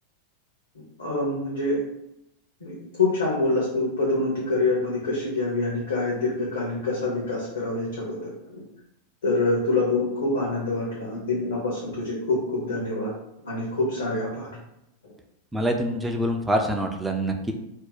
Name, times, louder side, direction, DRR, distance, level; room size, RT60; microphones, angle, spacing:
voice 1, 1.0-1.8 2.6-8.6 9.2-13.1 13.4-14.5, left 2 dB, 70° left, -4 dB, 0.8 m, -26 dB
voice 2, 15.5-17.5, equal, 10° right, 3 dB, 0.4 m, -25 dB
2.7 x 2.1 x 3.9 m, 0.85 s
figure-of-eight pair, 90°, 0 cm